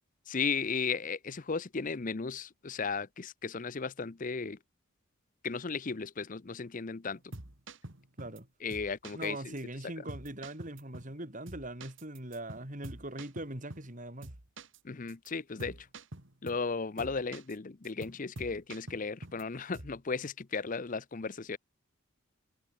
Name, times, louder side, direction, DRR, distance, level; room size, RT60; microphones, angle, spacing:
voice 1, 0.3-4.6 5.4-7.2 8.6-9.5 14.8-15.9 16.4-21.6, left 5 dB, 35° left, 0.6 m, -35 dB
sound 1, 7.1-8.4 8.7-9.3 9.6-9.7 10.1-11.2 11.5-14.0 14.2-14.8 15.1-15.3 15.6-16.7 17.0-17.6 17.8-19.4 19.7-20.0, right 2 dB, 55° right, 2.7 m, -47 dB
voice 2, 9.1-14.3 17.0-17.2, right 1 dB, 35° right, 4.0 m, -41 dB
head